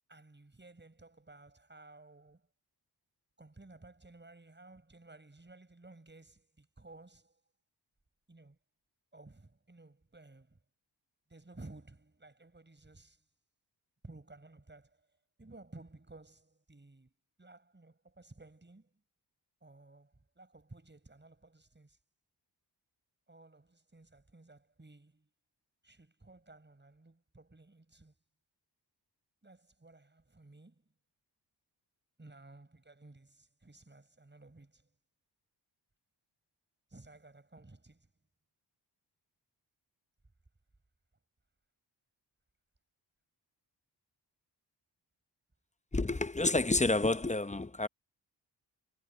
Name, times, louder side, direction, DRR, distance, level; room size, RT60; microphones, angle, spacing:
voice 1, 0.1-2.5 3.4-7.4 8.3-8.6 9.1-10.6 11.3-13.2 14.0-15.1 15.4-17.1 17.4-18.9 19.6-22.0 23.3-25.3 25.8-28.1 29.4-30.9 32.2-34.9 36.9-38.1, right 2 dB, 25° right, 6.6 m, -56 dB
voice 2, 45.9-47.9, left 2 dB, 15° left, 0.8 m, -29 dB
cardioid pair, 70°, 44 cm